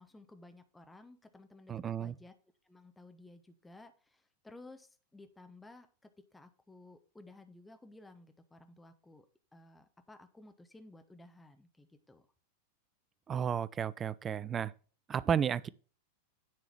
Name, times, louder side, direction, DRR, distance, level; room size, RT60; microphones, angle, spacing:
voice 1, 0.0-2.3 2.6-9.3 9.5-12.2, left 2 dB, 10° left, 1.0 m, -56 dB
voice 2, 1.7-2.1 13.3-14.7 15.1-15.7, right 8 dB, 25° right, 0.4 m, -32 dB
9.9 x 3.8 x 5.9 m
figure-of-eight pair, 90°, 0 cm